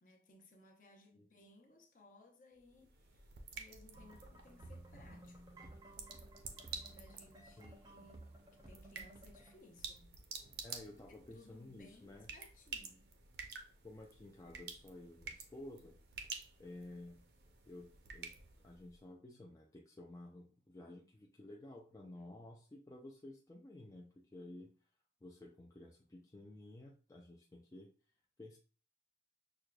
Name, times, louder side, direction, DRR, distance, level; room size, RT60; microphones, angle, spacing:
voice 1, 0.0-5.8 6.9-10.2 11.1-13.1, left 2 dB, 45° left, 0.7 m, -63 dB
sound 1, 2.6-19.0, right 5 dB, 65° right, 0.6 m, -51 dB
sound 2, 3.9-9.6, right 1 dB, 20° right, 0.6 m, -57 dB
voice 2, 7.6-8.1 10.6-12.3 13.8-16.0 16.6-17.2 17.7-18.3 18.6-24.7 25.2-27.9 28.4-28.6, left 1 dB, 20° left, 0.3 m, -53 dB
6.2 x 2.3 x 2.3 m
head